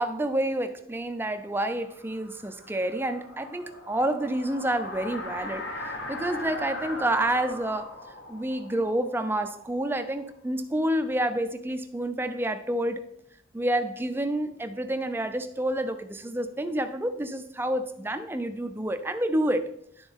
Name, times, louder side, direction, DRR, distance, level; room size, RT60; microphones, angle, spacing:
voice 1, 0.0-5.7 6.1-7.9 8.3-13.0 13.5-19.7, right 1 dB, 10° right, 8 dB, 0.4 m, -28 dB
sound 1, 1.5-10.2, left 2 dB, 60° left, 1.2 m, -40 dB
11.5 x 3.9 x 3.5 m, 0.71 s
head